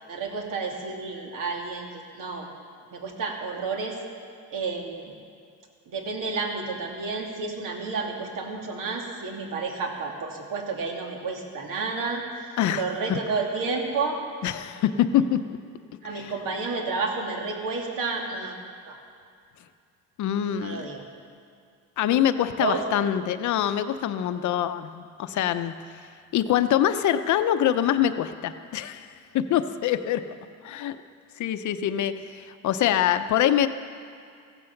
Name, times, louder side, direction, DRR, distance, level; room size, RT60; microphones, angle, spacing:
voice 1, 0.1-1.9 2.1-2.5 2.9-4.0 4.5-5.2 5.9-12.2 12.7-14.2 16.0-18.6 18.9-19.0 20.5-21.0 22.6-22.8, right 4 dB, 70° right, 1 dB, 2.5 m, -30 dB
voice 2, 14.4-15.6 16.1-16.3 20.2-20.9 22.0-25.7 26.3-30.2 30.6-31.0 31.4-33.7, left 10 dB, 60° left, 10 dB, 0.7 m, -24 dB
15.5 x 14.0 x 5.9 m, 2.3 s
cardioid pair, 160°, 33 cm